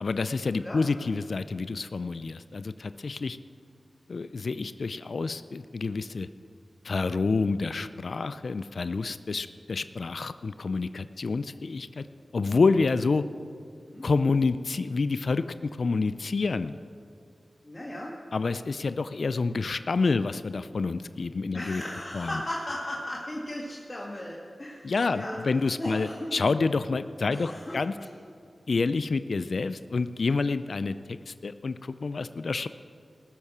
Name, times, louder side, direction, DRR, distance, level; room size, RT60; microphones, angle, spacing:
voice 1, 0.0-3.4 4.1-6.3 6.8-12.1 12.3-13.2 14.0-16.8 18.3-21.8 22.1-22.4 24.8-27.9 28.7-32.7, left 4 dB, 70° left, 12 dB, 0.4 m, -28 dB
voice 2, 17.6-18.1 21.5-25.4 25.8-26.4 27.3-27.8, left 1 dB, 35° left, -4 dB, 1.9 m, -36 dB
19.0 x 6.6 x 7.2 m, 2.3 s
cardioid pair, 55°, 0 cm